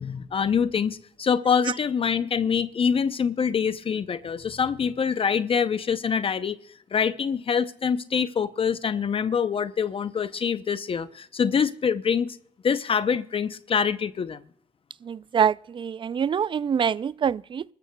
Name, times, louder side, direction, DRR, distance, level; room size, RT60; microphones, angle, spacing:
voice 1, 0.0-6.6 6.9-12.4 12.6-14.4, left 6 dB, 45° left, 0.6 m, -25 dB
voice 2, 15.0-17.6, right 7 dB, 40° right, 0.4 m, -25 dB
25.0 x 13.5 x 2.3 m
cardioid pair, 65°, 13 cm